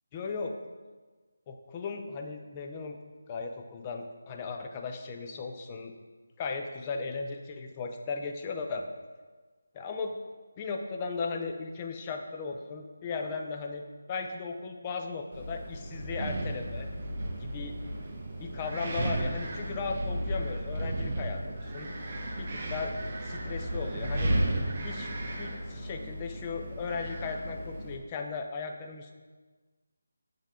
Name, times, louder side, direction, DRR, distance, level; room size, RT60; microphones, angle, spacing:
voice 1, 0.1-0.6 1.5-3.0 3.3-5.9 6.4-8.9 9.7-10.2 10.6-16.9 17.4-17.7 18.4-21.9 22.4-22.9 23.2-24.3 24.8-25.1 25.4-29.1, left 4 dB, 20° left, 4 dB, 0.5 m, -36 dB
Wind, 15.3-28.0, right 1 dB, 40° right, 0.8 m, -34 dB
7.3 x 3.6 x 3.7 m, 1.3 s
figure-of-eight pair, 165°, 0 cm